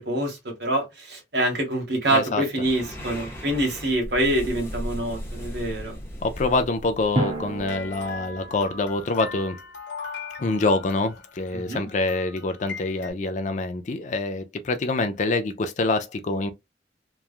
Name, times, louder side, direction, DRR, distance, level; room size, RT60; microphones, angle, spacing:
voice 1, 0.0-5.9 11.5-11.9, right 1 dB, 65° right, 1.4 m, -26 dB
voice 2, 2.1-2.4 6.2-9.6 10.4-16.5, left 3 dB, 45° left, 0.4 m, -26 dB
sound 1, 2.6-8.1, equal, 15° left, 0.9 m, -37 dB
Drum, 7.2-8.9, right 1 dB, 35° right, 0.8 m, -30 dB
sound 2, 7.7-13.1, left 4 dB, 75° left, 1.1 m, -39 dB
3.0 x 2.3 x 2.4 m
head